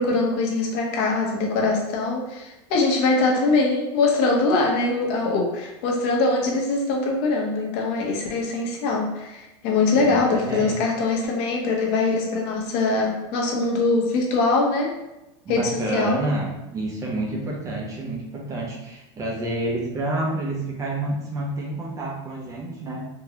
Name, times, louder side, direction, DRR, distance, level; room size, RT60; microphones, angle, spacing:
voice 1, 0.0-14.9 15.5-16.2, left 3 dB, 60° left, -1 dB, 0.9 m, -22 dB
voice 2, 10.0-10.8 15.4-23.0, right 2 dB, 20° right, -2 dB, 0.6 m, -29 dB
3.7 x 2.3 x 2.8 m, 0.95 s
supercardioid pair, 150°, 15 cm